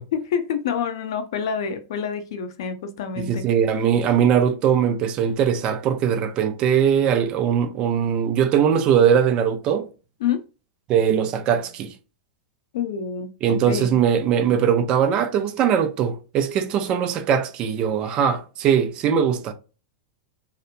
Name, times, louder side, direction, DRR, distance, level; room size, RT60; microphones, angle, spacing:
voice 1, 0.1-3.4 10.2-10.4 12.7-14.0, left 7 dB, 70° left, 0.6 m, -27 dB
voice 2, 3.2-9.9 10.9-11.9 13.4-19.5, right 8 dB, 40° right, 0.5 m, -20 dB
2.9 x 2.0 x 2.4 m
hypercardioid pair, 120°, 2 cm